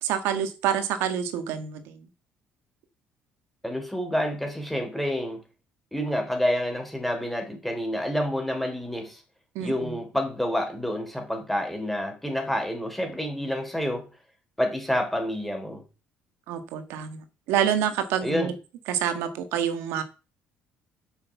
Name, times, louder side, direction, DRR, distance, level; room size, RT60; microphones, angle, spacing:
voice 1, 0.0-2.0 9.5-9.9 16.5-18.5 18.9-20.0, right 9 dB, 85° right, 1.5 m, -27 dB
voice 2, 3.6-5.4 5.9-9.2 9.6-14.0 14.6-15.8 18.2-18.5, equal, 5° left, 3.4 m, -28 dB
7.4 x 6.4 x 7.2 m
cardioid pair, 105°, 4 cm